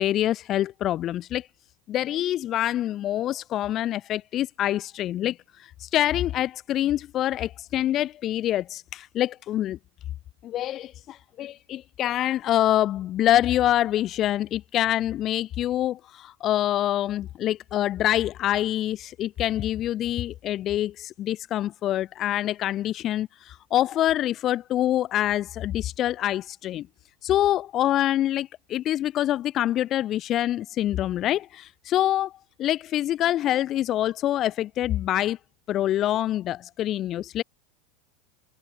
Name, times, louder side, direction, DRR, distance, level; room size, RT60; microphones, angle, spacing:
voice 1, 0.0-1.5 1.9-5.4 5.8-9.8 10.4-26.9 27.2-32.3 32.6-35.4 35.7-37.4, left 12 dB, 40° left, 1.3 m, -25 dB
hypercardioid pair, 100°, 0 cm